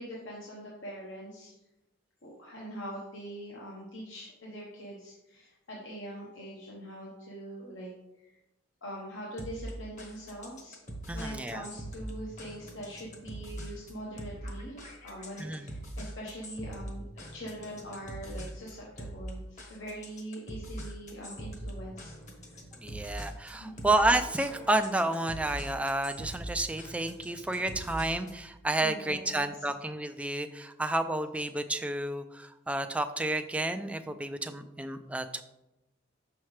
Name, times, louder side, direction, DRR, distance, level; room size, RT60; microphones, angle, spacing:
voice 1, 0.0-1.6 2.2-7.9 8.2-8.4 8.8-10.8 11.1-22.1 22.4-22.5 23.6-23.9 28.8-29.7, equal, 70° left, -4 dB, 1.1 m, -43 dB
sound 1, 9.4-28.5, right 1 dB, 35° left, 1.1 m, -42 dB
voice 2, 11.1-11.7 15.4-15.7 22.8-35.4, right 2 dB, 5° right, 7 dB, 0.3 m, -30 dB
6.4 x 5.8 x 3.2 m, 0.94 s
head